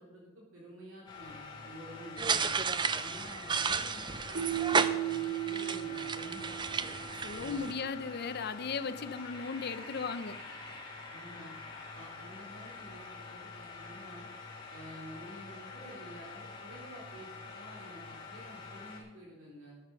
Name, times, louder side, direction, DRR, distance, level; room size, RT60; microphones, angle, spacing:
voice 1, 0.0-2.6 3.0-6.9 7.4-7.9 11.1-11.5 11.9-14.3 14.7-19.8, equal, 70° right, -4 dB, 3.7 m, -50 dB
sound 1, 1.1-19.0, left 4 dB, 20° left, 3.1 m, -47 dB
sound 2, 2.2-7.7, right 5 dB, 20° right, 0.4 m, -33 dB
Keyboard (musical), 4.3-7.2, right 14 dB, 50° right, 0.9 m, -35 dB
voice 2, 7.1-10.4, left 5 dB, 50° left, 13 dB, 0.6 m, -37 dB
12.5 x 8.8 x 5.5 m, 1.2 s
head